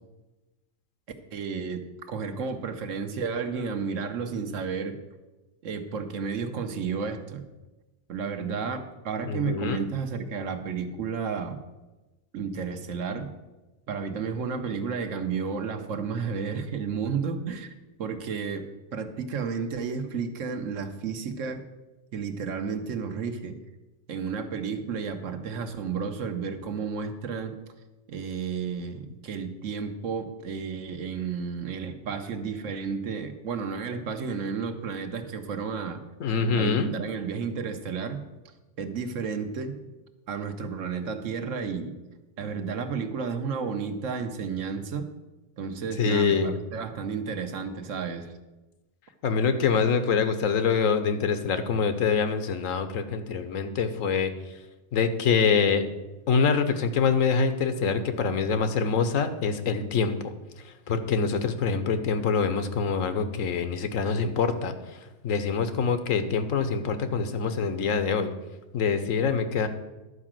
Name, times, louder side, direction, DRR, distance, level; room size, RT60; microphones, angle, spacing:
voice 1, 1.3-5.0 5.6-7.5 8.1-11.6 12.3-13.3 13.9-17.7 18.0-21.6 22.1-23.6 24.1-27.6 28.1-36.0 36.6-38.2 38.8-39.8 40.3-42.0 42.4-45.1 45.6-48.3, right 5 dB, 80° right, 7 dB, 1.3 m, -32 dB
voice 2, 9.2-9.8 36.2-36.9 46.0-46.6 49.2-54.3 54.9-55.8 56.3-60.2 60.9-68.3 68.7-69.7, left 5 dB, 90° left, 9 dB, 1.2 m, -25 dB
11.0 x 4.9 x 7.4 m, 1.1 s
omnidirectional pair, 1.3 m